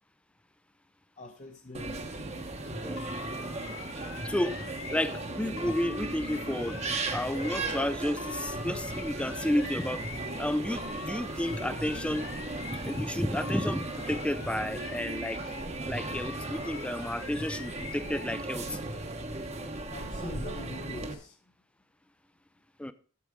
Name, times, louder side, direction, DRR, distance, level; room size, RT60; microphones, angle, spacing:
voice 1, 1.2-2.0 19.9-21.4, left 2 dB, 30° left, 0.7 m, -43 dB
sound 1, 1.7-21.1, right 2 dB, 30° right, 0.9 m, -37 dB
sound 2, 3.0-5.3 5.6-7.9 8.2-10.5 10.8-13.1 13.4-15.7 16.0-18.3, left 4 dB, 65° left, 3.2 m, -44 dB
voice 2, 4.2-4.6 4.9-6.8 7.1-10.1 10.4-12.3 12.7-15.4 15.9-18.8 22.8-22.9, left 1 dB, 5° left, 0.4 m, -31 dB
8.5 x 7.6 x 5.0 m
head